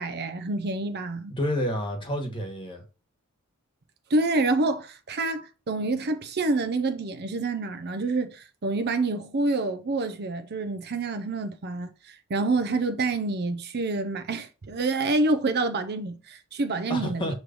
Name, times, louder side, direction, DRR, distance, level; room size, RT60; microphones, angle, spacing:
voice 1, 0.0-1.3 4.1-17.3, right 3 dB, 45° right, 0.6 m, -27 dB
voice 2, 1.3-2.8 16.9-17.3, equal, 20° left, 1.4 m, -29 dB
6.5 x 3.1 x 5.2 m
head